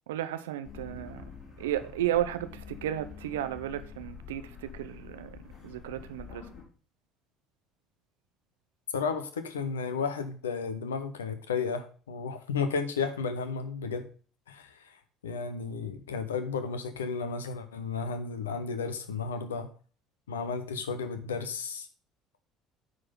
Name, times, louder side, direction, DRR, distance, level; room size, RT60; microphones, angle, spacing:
voice 1, 0.1-1.3 1.6-6.5, right 12 dB, 70° right, 0.6 m, -33 dB
sound 1, 0.6-6.6, left 7 dB, 40° left, 4.7 m, -47 dB
voice 2, 8.9-14.1 14.5-14.7 15.2-19.7 20.3-21.9, left 5 dB, 75° left, 0.8 m, -33 dB
9.5 x 4.0 x 5.2 m
figure-of-eight pair, 60°, 0 cm